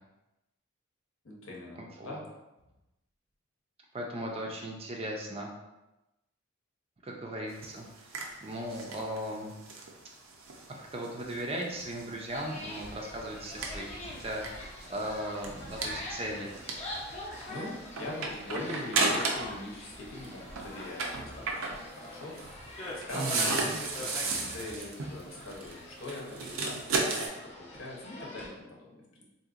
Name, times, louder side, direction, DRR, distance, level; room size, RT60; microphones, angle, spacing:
voice 1, 1.2-2.2 17.5-23.7 24.0-29.2, left 2 dB, 75° left, -2 dB, 0.8 m, -42 dB
voice 2, 1.8-2.2 3.9-5.5 7.0-9.5 10.9-16.5 23.1-23.8, right 1 dB, 30° right, 0 dB, 0.4 m, -37 dB
sound 1, 7.5-19.6 19.9-27.3, right 3 dB, 75° right, 0.5 m, -35 dB
sound 2, 12.3-28.5, left 1 dB, 30° left, 0.6 m, -44 dB
3.7 x 2.8 x 2.4 m, 0.98 s
head